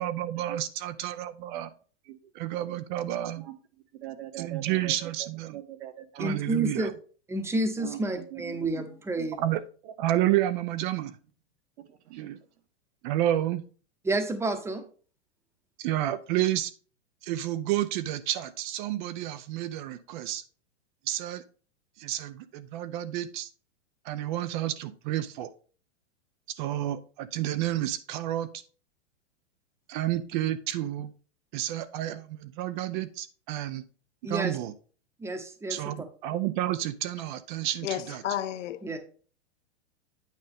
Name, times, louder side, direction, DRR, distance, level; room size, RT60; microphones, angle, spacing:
voice 1, 0.0-1.7 2.4-3.4 4.4-5.6 6.2-6.9 9.4-11.2 12.1-12.4 13.0-13.6 15.8-16.7 17.2-20.4 21.1-21.4 22.0-23.5 24.0-25.5 26.6-28.5 29.9-31.1 31.5-33.8 34.2-34.7 35.7-38.2, right 13 dB, 45° right, 0.6 m, -30 dB
voice 2, 3.9-6.4 7.8-8.9 11.9-12.2, right 13 dB, 65° right, 1.4 m, -42 dB
voice 3, 6.2-6.9 7.3-9.4 14.0-14.8 34.2-34.6 35.2-35.8 38.8-39.0, right 2 dB, 5° right, 0.9 m, -30 dB
voice 4, 37.8-39.0, left 11 dB, 85° left, 0.8 m, -32 dB
9.1 x 5.3 x 3.5 m
hypercardioid pair, 135°, 36 cm